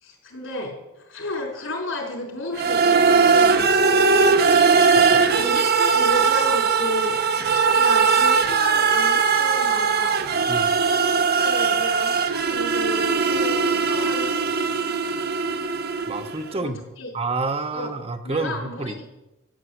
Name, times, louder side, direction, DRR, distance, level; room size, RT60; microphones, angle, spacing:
voice 1, 0.0-4.0 5.1-7.2 7.7-10.2 11.2-14.3 16.5-16.7 17.0-17.1 17.7-17.9 18.2-19.1, left 1 dB, 70° left, 1 dB, 4.4 m, -32 dB
sound 1, 2.6-16.4, right 5 dB, 50° right, 1.1 m, -19 dB
voice 2, 10.5-10.8 16.1-16.8 17.1-19.1, right 3 dB, 30° right, 7 dB, 1.0 m, -29 dB
14.0 x 9.4 x 7.9 m, 0.93 s
head